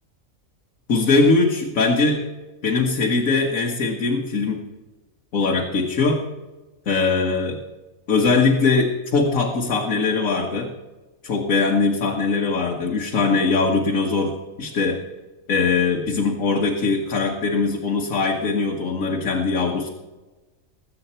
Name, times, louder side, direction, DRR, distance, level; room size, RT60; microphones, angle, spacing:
voice 1, 0.9-2.2 2.6-4.6 5.3-6.2 6.9-7.6 8.1-10.7 11.2-15.0 15.5-19.9, left 4 dB, 75° left, -1 dB, 1.8 m, -21 dB
21.0 x 8.6 x 4.4 m, 1.2 s
omnidirectional pair, 1.4 m